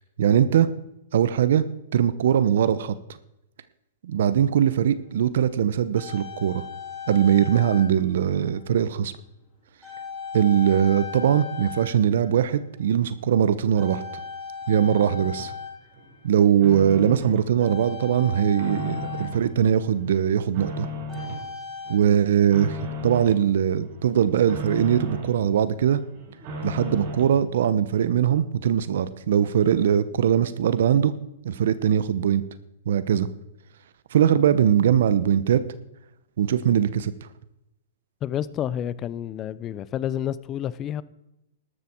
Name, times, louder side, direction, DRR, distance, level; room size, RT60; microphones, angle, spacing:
voice 1, 0.2-0.7 1.1-1.6 1.9-3.2 4.0-6.6 7.1-9.1 10.3-14.0 14.7-15.5 16.2-20.9 21.9-22.8 23.0-26.0 26.6-31.1 31.4-32.4 32.9-33.3 34.1-35.6 36.4-37.3, right 9 dB, 70° right, 0.9 m, -21 dB
sound 1, 4.5-4.6 5.5-8.1 8.4-8.7 9.8-12.6 12.9-13.3 13.8-16.4 17.6-20.0 21.1-22.0, left 6 dB, 5° left, 4.2 m, -38 dB
sound 2, 14.7-15.5 15.9-17.5 17.9-19.5 19.9-21.4 21.8-23.4 23.8-25.4 25.8-27.4, equal, 40° right, 4.7 m, -36 dB
voice 2, 38.2-41.0, left 10 dB, 25° left, 0.7 m, -29 dB
13.0 x 13.0 x 4.6 m
hypercardioid pair, 150°, 0 cm